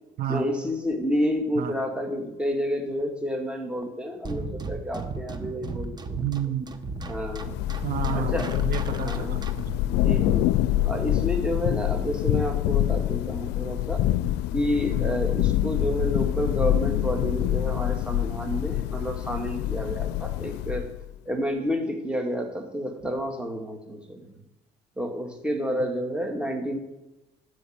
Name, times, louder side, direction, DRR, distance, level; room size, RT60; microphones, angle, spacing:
voice 1, 0.3-6.3 7.1-7.6 8.1-8.5 8.9-9.4 9.9-10.5 10.9-14.0 14.5-20.9 21.3-24.4 25.0-26.8, equal, 5° right, 2 dB, 2.0 m, -30 dB
sound 1, 4.2-9.8, right 3 dB, 25° right, 1.0 m, -36 dB
voice 2, 6.2-6.7 7.8-9.8 10.1-10.4, right 10 dB, 60° right, 10 dB, 1.3 m, -31 dB
Thunder / Rain, 7.0-21.1, left 13 dB, 85° left, 0.4 m, -26 dB
13.0 x 4.9 x 8.7 m, 1.0 s
cardioid pair, 110°, 17 cm